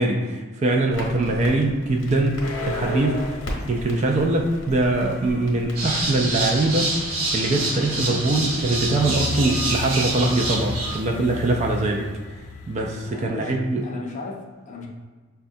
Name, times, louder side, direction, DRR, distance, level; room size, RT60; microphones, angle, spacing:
voice 1, 0.0-3.4 3.7-7.1 7.3-12.1 12.7-13.9, right 2 dB, 30° right, 1 dB, 0.3 m, -22 dB
Crackle, 0.9-6.6, left 1 dB, 60° left, 0.8 m, -37 dB
sound 1, 1.8-13.3, left 3 dB, 85° left, 0.5 m, -35 dB
sound 2, 5.7-11.0, right 2 dB, 85° right, 0.9 m, -27 dB
voice 2, 13.0-13.6 13.8-14.9, left 3 dB, 35° left, -1 dB, 0.5 m, -36 dB
5.8 x 2.2 x 2.6 m, 1.4 s
head